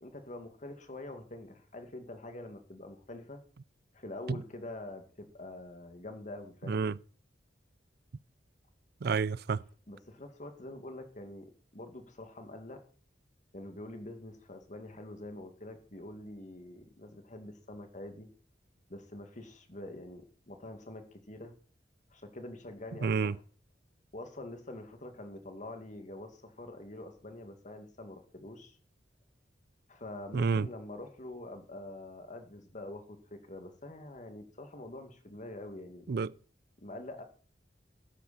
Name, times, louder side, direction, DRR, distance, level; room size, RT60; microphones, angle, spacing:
voice 1, 0.0-3.4 3.9-6.9 9.9-12.8 13.5-18.3 18.9-21.5 22.1-23.4 24.1-28.8 29.9-36.1 36.8-37.2, left 1 dB, 45° left, 2.2 m, -45 dB
voice 2, 9.0-9.6 23.0-23.3 30.3-30.7 36.1-36.3, right 5 dB, 60° right, 0.4 m, -29 dB
13.5 x 10.5 x 4.3 m
head